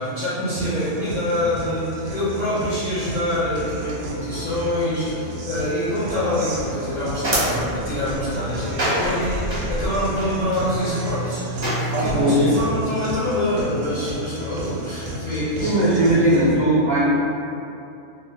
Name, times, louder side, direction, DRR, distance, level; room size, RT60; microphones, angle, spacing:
voice 1, 0.0-11.4 12.0-15.9, left 1 dB, 55° left, -10 dB, 0.5 m, -25 dB
Guitar, 0.5-16.5, equal, 90° right, 1.0 m, -32 dB
sound 1, 6.6-12.2, right 1 dB, 35° right, 0.8 m, -28 dB
voice 2, 11.9-12.5 15.6-17.0, right 1 dB, 60° right, -10 dB, 0.4 m, -18 dB
2.5 x 2.2 x 3.3 m, 2.6 s
omnidirectional pair, 1.3 m